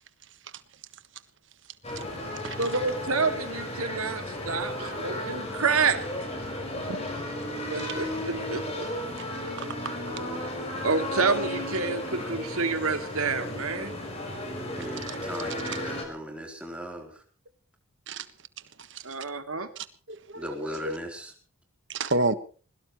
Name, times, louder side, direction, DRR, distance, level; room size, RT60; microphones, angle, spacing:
sound 1, 1.8-16.0, left 1 dB, 30° left, 5.5 m, -34 dB
voice 1, 2.6-6.0 7.7-8.6 10.8-13.9 19.0-19.7, right 4 dB, 75° right, 7 dB, 2.5 m, -28 dB
voice 2, 9.6-9.9 15.1-15.2 18.1-18.3 18.9-19.0 19.8-21.0 21.9-22.3, right 2 dB, 55° right, 12 dB, 1.5 m, -31 dB
voice 3, 14.8-17.2 20.3-21.3, equal, 5° right, 1 dB, 3.9 m, -38 dB
22.0 x 20.0 x 3.2 m, 0.40 s
head